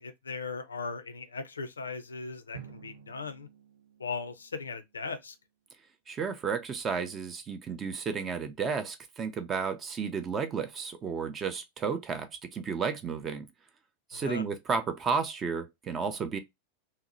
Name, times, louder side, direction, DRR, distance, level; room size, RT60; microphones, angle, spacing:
voice 1, 0.0-3.5 4.0-5.3 14.1-14.4, left 4 dB, 75° left, 0.4 m, -38 dB
Drum, 2.5-5.2, right 7 dB, 75° right, 0.9 m, -51 dB
voice 2, 6.1-13.5 14.1-16.4, right 5 dB, 25° right, 0.4 m, -32 dB
2.7 x 2.0 x 2.6 m
figure-of-eight pair, 90°, 0 cm